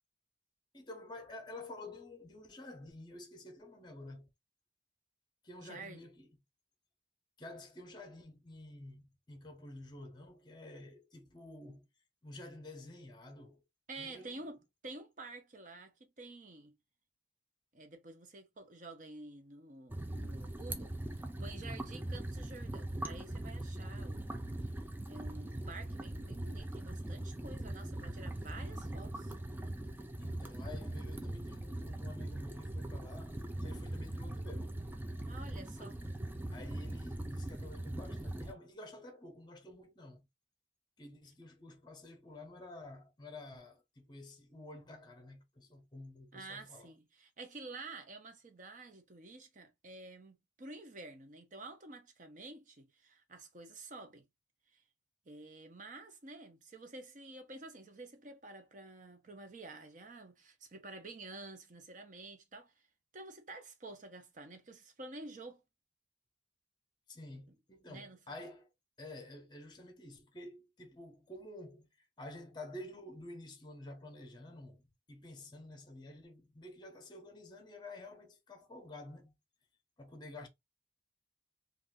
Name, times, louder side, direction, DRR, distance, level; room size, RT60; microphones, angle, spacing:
voice 1, 0.7-4.3 5.4-6.3 7.4-11.9 12.2-13.6 14.0-14.5 21.6-21.9 30.2-34.8 35.8-35.9 36.5-40.3 41.0-46.9 67.1-68.7 69.0-74.8 75.1-79.3 80.0-80.5, left 2 dB, 25° left, 0.7 m, -50 dB
voice 2, 5.6-6.0 13.9-16.8 17.7-21.0 21.4-24.4 25.1-29.3 35.3-36.0 46.3-54.2 54.7-54.8 55.3-62.7 63.1-65.6 67.9-68.2, right 2 dB, 45° right, 0.7 m, -50 dB
sound 1, 19.9-38.5, right 1 dB, 10° right, 0.3 m, -41 dB
2.6 x 2.4 x 3.5 m
head